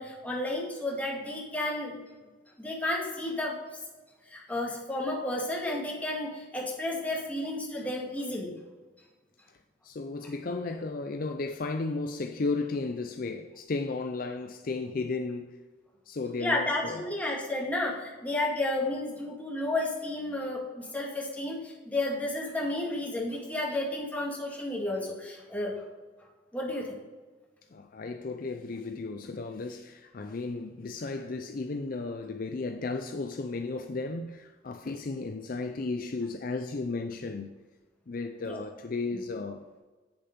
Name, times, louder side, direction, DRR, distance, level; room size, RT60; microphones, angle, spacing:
voice 1, 0.0-2.0 2.6-3.6 4.3-8.5 16.4-25.7 26.5-26.9 38.4-38.6, left 1 dB, 10° left, 1.9 m, -32 dB
voice 2, 9.8-15.6 16.1-17.1 27.7-37.5 38.1-39.6, left 3 dB, 50° left, 0.5 m, -34 dB
8.1 x 6.9 x 5.3 m
head